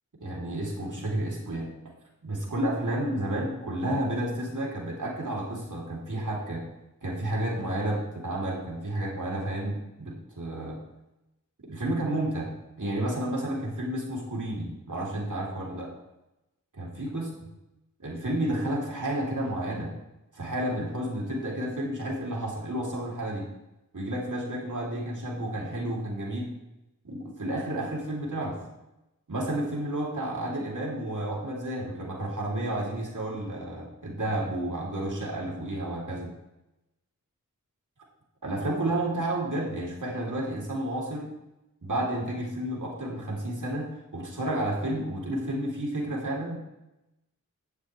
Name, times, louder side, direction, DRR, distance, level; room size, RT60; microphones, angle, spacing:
voice 1, 0.2-1.7 2.2-6.6 7.0-10.8 11.6-12.5 12.8-15.9 16.7-17.3 18.0-19.9 20.3-23.5 23.9-26.5 27.0-28.6 29.3-36.3 38.4-41.3 41.8-46.6, right 1 dB, 70° right, -3 dB, 3.2 m, -31 dB
11.5 x 9.5 x 3.4 m, 0.94 s
wide cardioid pair, 55°, 32 cm